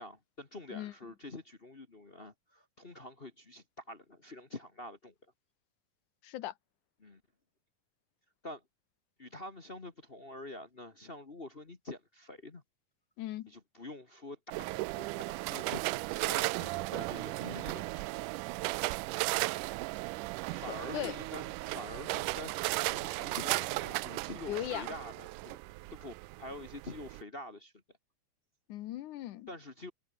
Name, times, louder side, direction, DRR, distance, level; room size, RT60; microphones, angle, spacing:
voice 1, 0.0-5.1 7.0-7.2 8.4-8.6 9.2-12.6 13.5-18.1 20.5-27.7 29.5-29.9, left 2 dB, 40° left, 0.8 m, -46 dB
voice 2, 6.2-6.5 13.2-13.5 20.7-21.2 24.5-24.9 28.7-29.5, left 14 dB, 75° left, 2.4 m, -38 dB
sound 1, 14.5-27.2, right 21 dB, 85° right, 2.1 m, -36 dB
omnidirectional pair, 3.6 m